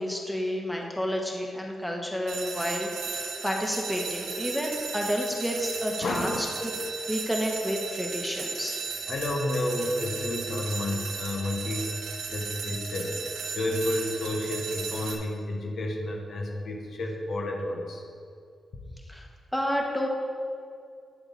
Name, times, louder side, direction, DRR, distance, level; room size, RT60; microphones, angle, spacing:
voice 1, 0.0-6.7 7.1-8.8 19.1-19.2 19.5-20.1, equal, 5° left, 0 dB, 1.5 m, -30 dB
sound 1, 2.3-15.1, right 5 dB, 85° right, 1.1 m, -35 dB
voice 2, 6.0-6.4 9.1-12.0 12.3-18.0, left 1 dB, 70° left, 0 dB, 1.4 m, -31 dB
9.7 x 6.8 x 4.3 m, 2.4 s
cardioid pair, 65°, 0 cm